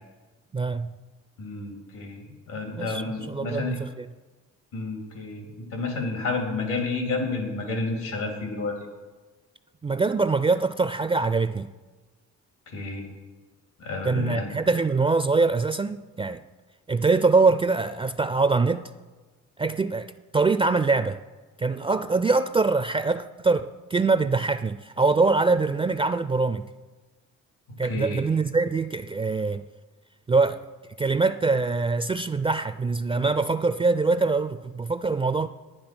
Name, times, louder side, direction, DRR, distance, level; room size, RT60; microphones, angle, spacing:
voice 1, 0.5-0.9 2.8-4.1 9.8-11.7 14.0-16.4 16.9-18.8 19.6-21.2 21.6-26.7 27.8-29.6 30.3-30.6 31.0-35.5, right 3 dB, 20° right, 11 dB, 0.4 m, -23 dB
voice 2, 1.4-3.8 4.7-8.7 12.7-13.0 13.8-14.5 27.9-28.2, left 3 dB, 85° left, 2 dB, 3.1 m, -30 dB
10.5 x 9.5 x 6.1 m, 1.3 s
cardioid pair, 90°, 30 cm